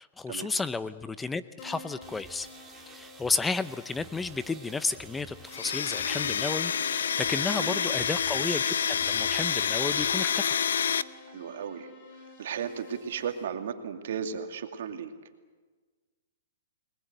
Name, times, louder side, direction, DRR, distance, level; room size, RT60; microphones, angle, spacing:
voice 1, 0.0-2.5 2.9-10.6, left 4 dB, 10° left, 14 dB, 0.7 m, -32 dB
Keyboard (musical), 1.6-13.4, left 4 dB, 50° left, 5.3 m, -51 dB
sound 1, 2.0-10.1, right 5 dB, 15° right, 2.8 m, -51 dB
Domestic sounds home sounds, 5.5-11.0, left 7 dB, 80° left, 0.7 m, -28 dB
voice 2, 11.3-11.9 12.4-15.1, right 7 dB, 65° right, 6 dB, 2.4 m, -35 dB
29.5 x 20.0 x 8.0 m, 1.4 s
hypercardioid pair, 130°, 0 cm